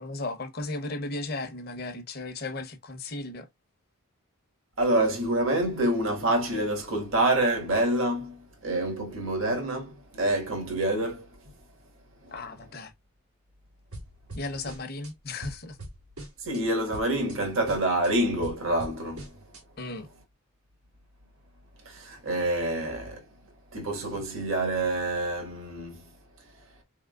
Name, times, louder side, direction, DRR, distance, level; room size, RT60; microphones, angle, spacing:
voice 1, 0.0-3.5 12.3-12.9 14.3-15.8 19.8-20.1, left 2 dB, 45° left, 0.8 m, -35 dB
voice 2, 4.8-11.3 12.2-12.3 16.4-19.4 21.8-23.3 23.7-26.0, right 1 dB, 60° right, 1.5 m, -27 dB
sound 1, 13.9-15.1 15.4-16.6 16.9-17.4 17.7-19.6, right 1 dB, 90° right, 1.9 m, -42 dB
4.2 x 3.6 x 2.3 m
head